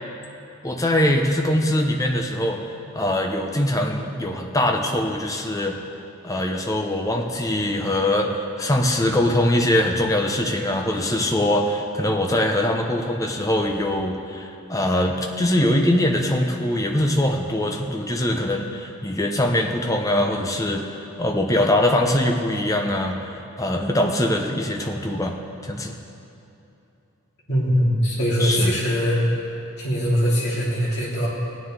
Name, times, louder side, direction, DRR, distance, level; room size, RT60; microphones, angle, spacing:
voice 1, 0.6-2.6 2.9-5.8 6.2-20.8 21.2-23.2 23.6-25.3 25.6-25.9 28.4-28.7, left 1 dB, 15° left, 2 dB, 0.7 m, -22 dB
voice 2, 27.5-29.2 29.8-31.3, equal, 50° left, -6 dB, 2.6 m, -21 dB
16.5 x 9.6 x 3.8 m, 2.8 s
head